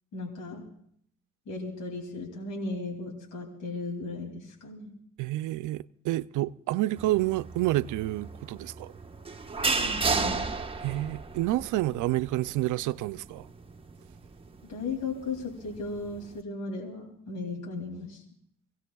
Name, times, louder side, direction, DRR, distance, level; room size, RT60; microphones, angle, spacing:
voice 1, 0.1-0.7 1.5-4.9 9.8-10.5 14.6-18.2, left 3 dB, 80° left, 2.7 m, -36 dB
voice 2, 5.2-8.9 10.8-13.5, right 16 dB, 80° right, 0.5 m, -29 dB
sound 1, 7.0-16.4, right 4 dB, 20° right, 1.1 m, -34 dB
26.0 x 16.5 x 2.3 m
cardioid pair, 90°, 30 cm